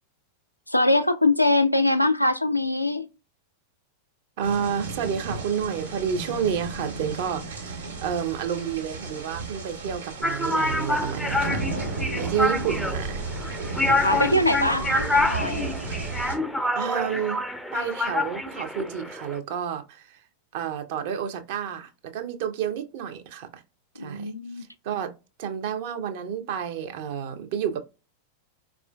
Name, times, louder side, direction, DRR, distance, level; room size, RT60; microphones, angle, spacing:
voice 1, 0.7-3.1 12.1-12.6 13.9-15.7 24.0-24.6, left 1 dB, 90° left, 0.3 m, -23 dB
voice 2, 4.4-11.6 12.1-13.3 14.1-14.4 16.7-17.4 17.7-20.2 20.5-23.6 23.9-25.1 25.4-27.8, right 8 dB, 50° right, 0.5 m, -30 dB
sound 1, 4.4-16.4, right 3 dB, 75° right, 1.3 m, -34 dB
sound 2, 10.2-19.4, left 2 dB, ahead, 0.4 m, -27 dB
4.2 x 2.4 x 2.2 m
figure-of-eight pair, 90°, 0 cm